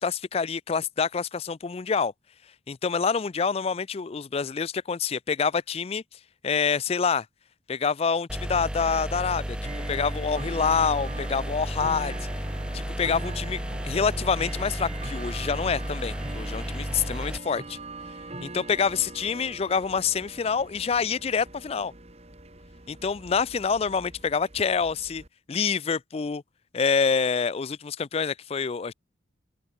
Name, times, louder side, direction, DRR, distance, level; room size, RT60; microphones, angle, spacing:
voice 1, 0.0-2.1 2.7-6.0 6.4-7.3 7.7-9.6 9.9-12.1 12.7-13.6 13.8-17.8 18.4-21.9 22.9-25.2 25.5-26.4 26.7-28.9, left 5 dB, 30° left, 0.4 m, -26 dB
sound 1, 8.3-17.4, equal, 5° right, 0.9 m, -33 dB
Bell / Tick-tock, 8.9-25.3, right 2 dB, 35° right, 2.9 m, -43 dB
open air
head